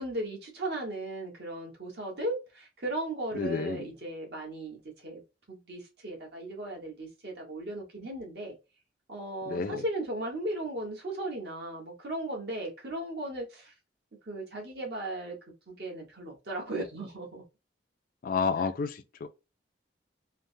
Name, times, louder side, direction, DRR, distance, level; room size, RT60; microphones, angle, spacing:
voice 1, 0.0-5.2 5.5-8.6 9.1-13.7 14.3-15.4 15.7-17.4 18.6-18.7, right 1 dB, 65° right, 1.2 m, -36 dB
voice 2, 3.3-3.9 9.5-9.8 18.2-19.3, left 5 dB, 50° left, 0.3 m, -30 dB
3.2 x 2.1 x 2.6 m
head